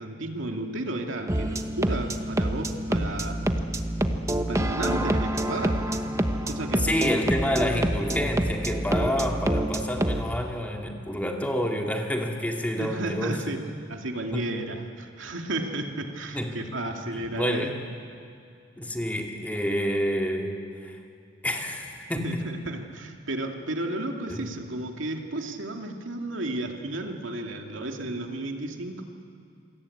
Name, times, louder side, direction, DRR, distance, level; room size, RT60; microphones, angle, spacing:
voice 1, 0.0-3.5 4.3-5.9 6.5-6.9 7.6-7.8 12.8-17.7 22.2-29.0, right 2 dB, 85° right, 3 dB, 2.4 m, -33 dB
sound 1, 1.3-10.2, right 1 dB, 15° right, 1.1 m, -27 dB
voice 2, 6.8-13.4 14.3-14.5 16.3-16.6 17.1-17.8 18.8-21.0 21.4-22.5 24.3-24.5, equal, 10° left, 1 dB, 2.3 m, -28 dB
27.5 x 21.5 x 8.6 m, 2.4 s
head